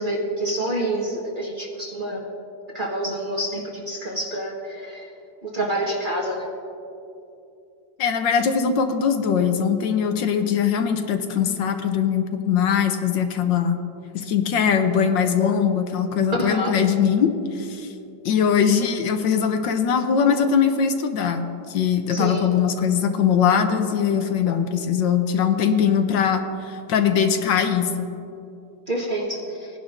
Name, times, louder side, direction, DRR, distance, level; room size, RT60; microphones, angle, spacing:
voice 1, 0.0-2.2 2.7-5.0 5.4-6.5 16.4-16.7 22.1-22.4 28.9-29.7, right 1 dB, 30° right, -2 dB, 1.4 m, -27 dB
voice 2, 8.0-13.8 14.1-17.9 18.2-28.1, left 7 dB, 75° left, 7 dB, 1.4 m, -21 dB
20.0 x 10.5 x 2.5 m, 2.6 s
omnidirectional pair, 2.1 m